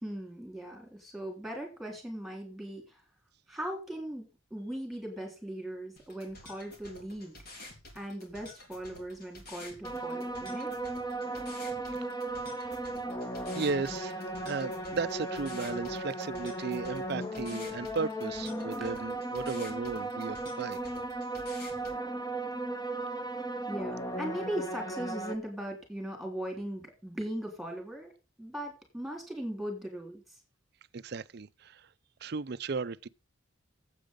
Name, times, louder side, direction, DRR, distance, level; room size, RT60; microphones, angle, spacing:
voice 1, 0.0-3.0 3.5-7.4 7.9-10.7 12.6-12.7 18.8-18.9 23.7-28.1 28.4-30.4, right 1 dB, ahead, 3.2 m, -39 dB
sound 1, 6.0-22.0, left 2 dB, 50° left, 3.6 m, -50 dB
sound 2, 9.8-25.4, right 2 dB, 20° left, 1.1 m, -36 dB
voice 2, 12.2-12.7 13.5-20.8 30.9-31.9 32.2-33.1, right 4 dB, 50° right, 0.5 m, -35 dB
9.2 x 8.2 x 5.2 m
head